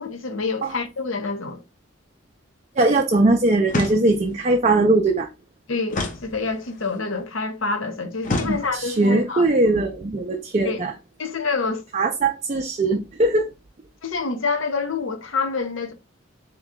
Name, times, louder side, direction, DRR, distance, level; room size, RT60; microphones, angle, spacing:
voice 1, 0.0-1.6 5.7-9.4 10.6-10.8 11.2-11.8 14.0-15.9, left 4 dB, 75° left, 0.8 m, -27 dB
voice 2, 2.8-5.3 8.4-10.9 11.9-13.5, right 2 dB, 35° right, 0.4 m, -20 dB
sound 1, 3.7-4.4 5.9-6.9 8.2-9.1, left 2 dB, 40° left, 0.6 m, -29 dB
3.7 x 2.9 x 3.7 m
head